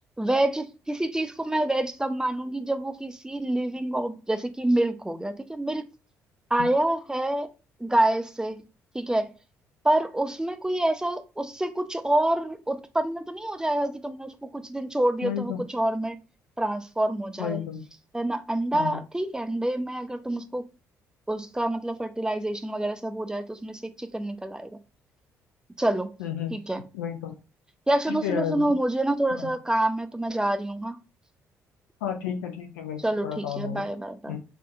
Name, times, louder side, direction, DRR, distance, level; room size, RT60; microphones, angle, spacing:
voice 1, 0.2-5.8 6.5-7.5 7.8-8.6 8.9-9.3 9.8-16.2 16.6-17.6 18.1-20.6 21.3-24.7 25.8-26.1 26.5-26.8 27.9-31.0 33.0-34.4, right 1 dB, 10° right, 0.6 m, -27 dB
voice 2, 15.2-15.6 17.4-17.8 18.7-19.0 26.2-26.5 26.9-27.3 28.1-28.7 29.3-29.5 32.0-33.9 34.3-34.4, left 9 dB, 70° left, 0.5 m, -32 dB
5.8 x 2.6 x 2.3 m
figure-of-eight pair, 45°, 8 cm